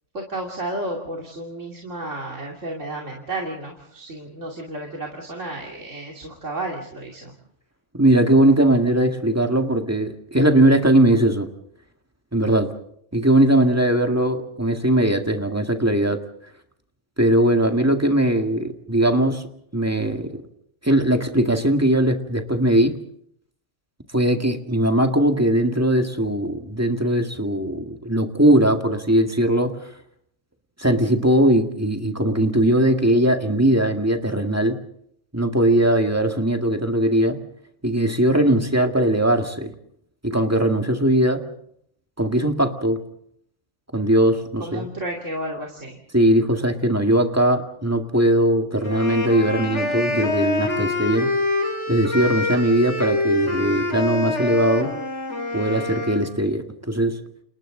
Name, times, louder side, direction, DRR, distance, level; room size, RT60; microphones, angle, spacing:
voice 1, 0.1-7.3 44.6-46.0, right 1 dB, 70° right, 0 dB, 3.1 m, -32 dB
voice 2, 7.9-11.5 12.3-12.7 13.1-16.2 17.2-19.4 19.7-20.3 20.8-23.0 24.1-29.7 30.8-34.8 35.3-37.4 37.8-39.7 40.2-41.4 42.2-43.0 43.9-44.9 46.1-51.3 51.9-54.9 55.5-57.2, right 1 dB, 10° right, 5 dB, 1.9 m, -19 dB
sound 1, 48.8-56.3, left 2 dB, 60° left, 4.2 m, -25 dB
30.0 x 28.5 x 3.9 m, 0.69 s
omnidirectional pair, 1.3 m